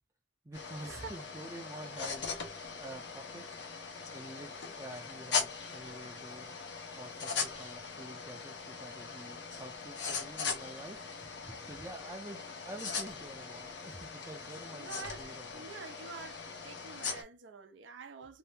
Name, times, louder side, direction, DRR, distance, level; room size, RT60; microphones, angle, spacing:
voice 1, 0.4-2.3 2.8-3.4 4.1-6.6 7.0-15.7, right 1 dB, 15° right, 0.5 m, -48 dB
sound 1, 0.5-17.2, left 5 dB, 65° left, 0.8 m, -40 dB
voice 2, 14.7-18.4, right 5 dB, 80° right, 0.5 m, -47 dB
2.7 x 2.0 x 3.3 m
head